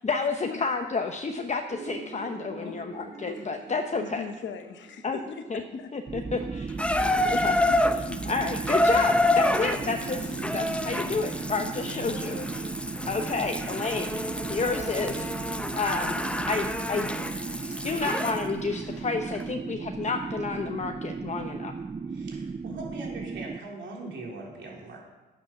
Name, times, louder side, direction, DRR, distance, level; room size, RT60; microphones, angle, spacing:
voice 1, 0.0-4.2 5.0-5.2 5.5-5.6 5.9-6.4 7.2-7.6 8.3-12.4 13.1-14.1 14.5-15.3 15.7-16.1 16.5-17.1 17.8-21.7, left 4 dB, 35° left, 4 dB, 0.9 m, -30 dB
sound 1, 1.7-12.4, right 1 dB, 55° right, 3.1 m, -45 dB
voice 2, 4.0-5.9 7.7-8.6 11.8-12.5, left 6 dB, 80° left, 7 dB, 1.0 m, -41 dB
sound 2, 6.1-23.6, right 4 dB, 25° right, 0.5 m, -36 dB
Water tap faucet / Bathtub (filling or washing), 6.8-18.4 19.4-19.5, left 1 dB, 5° left, 0.8 m, -28 dB
voice 3, 22.1-25.1, right 2 dB, 75° right, -2 dB, 3.4 m, -41 dB
10.0 x 9.0 x 6.0 m, 1.2 s
cardioid pair, 65°, 19 cm